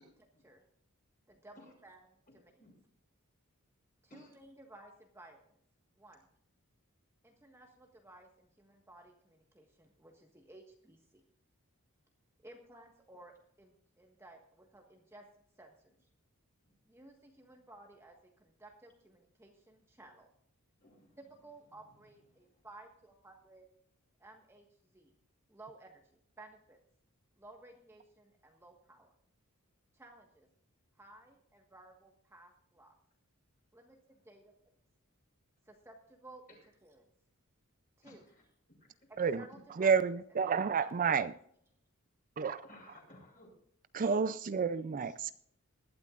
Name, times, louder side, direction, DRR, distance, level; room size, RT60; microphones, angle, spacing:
voice 1, 1.3-2.5 4.1-5.6 5.9-6.3 7.2-11.2 12.4-13.3 13.6-15.3 15.6-16.1 16.8-20.3 21.2-23.7 24.2-25.1 25.5-26.8 27.4-29.1 29.9-30.5 30.9-32.9 33.7-34.5 35.6-37.1 38.0-38.2 39.1-40.0 40.4-41.3, right 2 dB, 10° right, 1.5 m, -56 dB
voice 2, 20.8-21.2 21.7-22.0 22.3-22.6 36.5-36.6 38.0-38.4 42.6-43.5 45.0-45.3, left 1 dB, 40° left, 6.6 m, -58 dB
voice 3, 39.8-41.3 42.4-42.6 43.9-45.3, right 6 dB, 40° right, 0.4 m, -30 dB
20.5 x 12.0 x 2.5 m
head